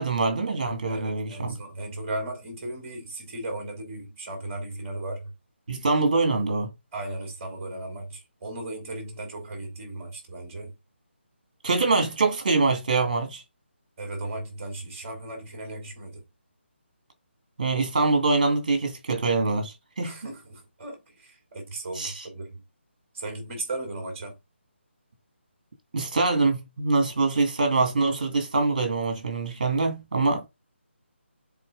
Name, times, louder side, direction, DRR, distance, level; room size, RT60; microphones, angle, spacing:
voice 1, 0.0-1.6 5.7-6.7 11.6-13.4 17.6-20.1 21.9-22.3 25.9-30.4, right 3 dB, 40° right, 2.4 m, -24 dB
voice 2, 0.9-5.3 6.9-10.7 14.0-16.2 20.0-22.6 23.1-24.4, right 2 dB, 15° right, 2.8 m, -36 dB
7.5 x 4.1 x 3.8 m
hypercardioid pair, 175°, 7 cm